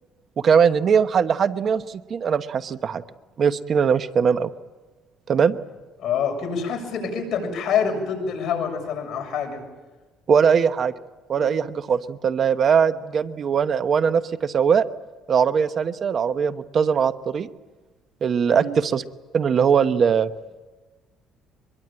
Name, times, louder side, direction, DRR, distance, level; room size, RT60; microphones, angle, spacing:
voice 1, 0.4-3.0 3.4-4.5 5.3-5.6 10.3-10.9 11.3-14.9 15.3-17.5 18.2-19.0 19.3-20.3, right 7 dB, 45° right, 11 dB, 0.9 m, -20 dB
voice 2, 6.0-9.6 11.4-11.6 18.5-18.7, left 6 dB, 50° left, 2 dB, 7.1 m, -26 dB
25.0 x 22.0 x 9.0 m, 1.2 s
cardioid pair, 120°, 0 cm